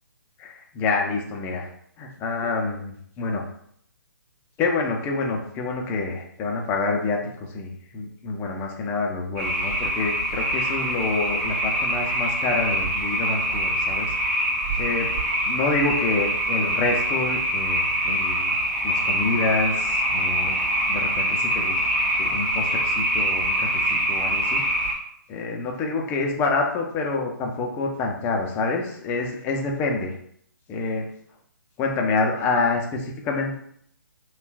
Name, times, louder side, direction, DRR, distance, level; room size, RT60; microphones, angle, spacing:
voice 1, 0.4-1.7 2.0-3.5 4.6-14.1 14.8-15.1 15.5-18.5 18.8-21.8 22.2-24.9 25.3-30.1 30.7-31.0 31.8-33.6, left 3 dB, 20° left, 1 dB, 0.6 m, -27 dB
sound 1, 9.4-24.9, right 1 dB, 35° right, 1.3 m, -24 dB
6.8 x 2.4 x 2.3 m, 0.67 s
figure-of-eight pair, 140°, 11 cm